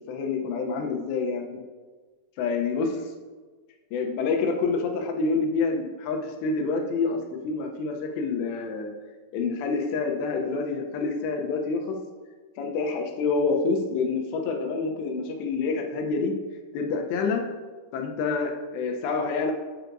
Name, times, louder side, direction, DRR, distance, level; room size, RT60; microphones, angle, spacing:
voice 1, 0.1-1.6 2.4-3.0 3.9-8.9 9.3-12.0 12.6-16.3 16.7-17.4 17.9-19.5, left 4 dB, 85° left, 3 dB, 3.0 m, -27 dB
9.2 x 9.1 x 2.6 m, 1.4 s
omnidirectional pair, 4.8 m